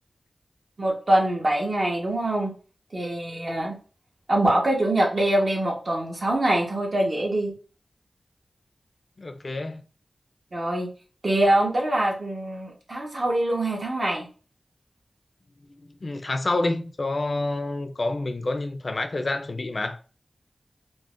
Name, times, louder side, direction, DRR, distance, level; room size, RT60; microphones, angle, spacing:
voice 1, 0.8-2.5 2.9-3.8 4.3-7.5 10.5-10.9 11.2-14.3, right 1 dB, 55° right, 1.1 m, -24 dB
voice 2, 9.2-9.8 15.8-20.0, left 2 dB, 55° left, 0.4 m, -28 dB
3.8 x 2.1 x 2.4 m
cardioid pair, 50°, 0 cm